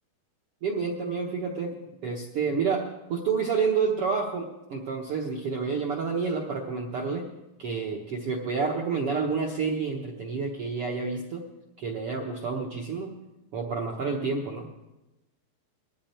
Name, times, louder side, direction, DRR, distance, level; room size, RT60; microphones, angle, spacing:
voice 1, 0.6-1.7 2.0-2.8 3.1-7.2 7.6-11.4 11.8-13.1 13.5-14.7, right 5 dB, 70° right, 0 dB, 1.3 m, -29 dB
20.0 x 14.0 x 4.4 m, 0.99 s
omnidirectional pair, 4.4 m